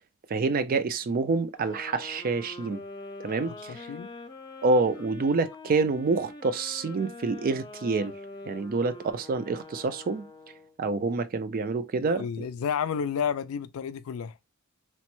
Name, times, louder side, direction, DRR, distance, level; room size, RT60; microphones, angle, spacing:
voice 1, 0.3-2.8 3.2-3.9 4.6-8.1 8.5-10.2 10.8-12.5, right 3 dB, 45° right, 0.4 m, -27 dB
sound 1, 1.5-10.8, left 2 dB, 20° left, 0.5 m, -44 dB
voice 2, 3.5-4.1 12.0-14.4, left 7 dB, 80° left, 0.3 m, -31 dB
3.0 x 2.1 x 3.0 m
head